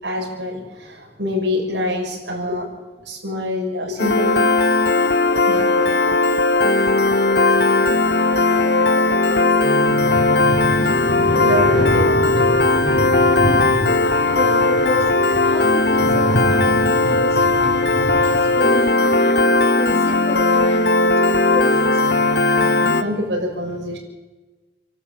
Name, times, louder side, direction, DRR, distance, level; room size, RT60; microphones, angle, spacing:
voice 1, 0.0-2.7 3.0-4.5 5.5-6.2 6.8-7.0 7.4-7.9 9.7-10.0 10.4-12.4 13.9-14.1 22.6-24.0, left 1 dB, 90° right, 0 dB, 6.9 m, -27 dB
Piano, 4.0-23.0, left 2 dB, 60° left, 1.2 m, -17 dB
voice 2, 8.1-9.8 10.2-10.5 14.0-19.5 19.8-21.0 21.5-22.2, left 2 dB, 35° left, 0 dB, 2.7 m, -31 dB
sound 1, 10.0-18.7, equal, 85° left, 3.6 m, -27 dB
28.5 x 12.0 x 8.8 m, 1.2 s
head